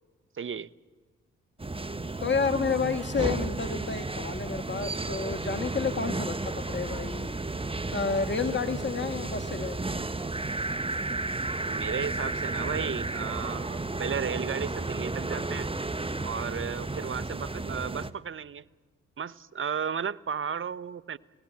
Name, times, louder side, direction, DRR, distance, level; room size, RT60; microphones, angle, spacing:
voice 1, 0.3-0.7 11.6-15.7 16.2-18.7 19.2-21.2, right 7 dB, 35° right, 0.8 m, -34 dB
sound 1, 1.6-18.1, right 2 dB, 15° right, 1.2 m, -33 dB
voice 2, 2.2-7.3 7.9-9.8, left 5 dB, 30° left, 1.6 m, -30 dB
27.5 x 17.5 x 8.7 m
hypercardioid pair, 45°, 35 cm